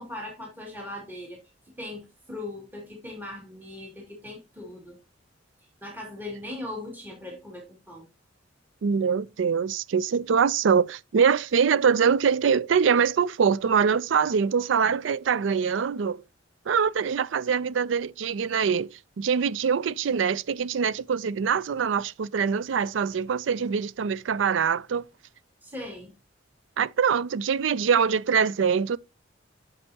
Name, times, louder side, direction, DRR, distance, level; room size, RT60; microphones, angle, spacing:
voice 1, 0.0-1.4 1.8-5.0 5.8-8.0 25.6-26.1, left 1 dB, 10° right, 2.3 m, -39 dB
voice 2, 8.8-16.2 16.7-25.1 26.8-29.0, right 6 dB, 70° right, 0.4 m, -24 dB
9.7 x 6.6 x 2.8 m
head